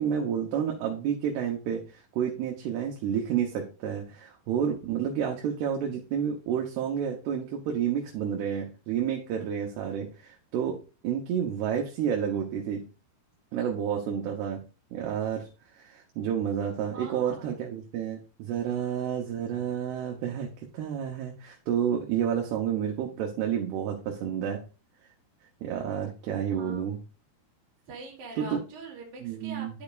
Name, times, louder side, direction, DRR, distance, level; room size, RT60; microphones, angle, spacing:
voice 1, 0.0-12.8 13.5-14.6 14.9-15.5 15.8-20.5 20.7-24.6 25.6-27.0 28.4-28.6 29.2-29.7, right 8 dB, 80° right, 0 dB, 3.0 m, -30 dB
voice 2, 16.9-17.5 18.6-18.8 26.5-26.9 27.9-29.8, right 3 dB, 50° right, -2 dB, 3.3 m, -43 dB
11.5 x 5.1 x 2.5 m, 0.33 s
omnidirectional pair, 4.8 m